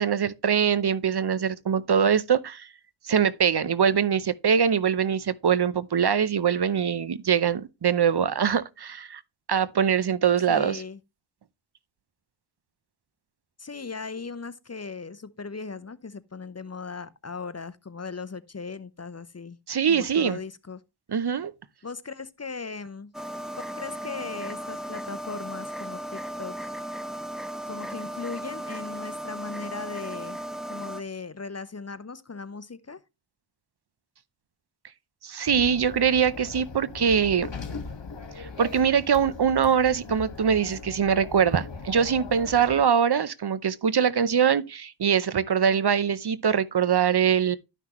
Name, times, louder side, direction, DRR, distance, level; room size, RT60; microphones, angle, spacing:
voice 1, 0.0-2.7 3.0-9.2 9.5-10.8 19.7-20.4 21.1-21.5 35.2-37.5 38.4-47.6, right 7 dB, 55° right, 0.7 m, -23 dB
voice 2, 10.5-11.0 13.6-19.6 19.9-20.8 21.8-23.1 23.8-26.7 27.7-30.4 30.7-33.0, left 4 dB, 30° left, 0.7 m, -38 dB
sound 1, 23.1-31.0, equal, ahead, 0.8 m, -36 dB
sound 2, 35.5-42.8, left 4 dB, 60° left, 1.7 m, -40 dB
12.0 x 5.8 x 3.0 m
cardioid pair, 40°, 48 cm